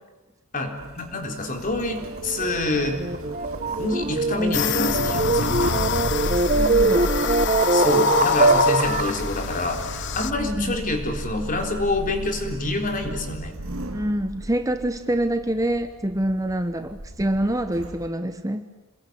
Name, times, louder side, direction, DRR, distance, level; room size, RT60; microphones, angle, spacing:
voice 1, 0.5-3.0 3.8-5.5 7.7-13.6, left 2 dB, 40° left, 4 dB, 4.0 m, -27 dB
Sliding door, 0.7-18.1, right 1 dB, 70° right, 2.2 m, -38 dB
sound 1, 1.9-9.2, right 3 dB, 35° right, 1.3 m, -23 dB
sound 2, 4.5-10.3, left 6 dB, 55° left, 1.0 m, -25 dB
voice 2, 6.5-7.1 10.4-10.9 13.9-18.7, right 1 dB, 15° right, 9 dB, 1.1 m, -26 dB
27.5 x 21.5 x 9.6 m, 1.1 s
head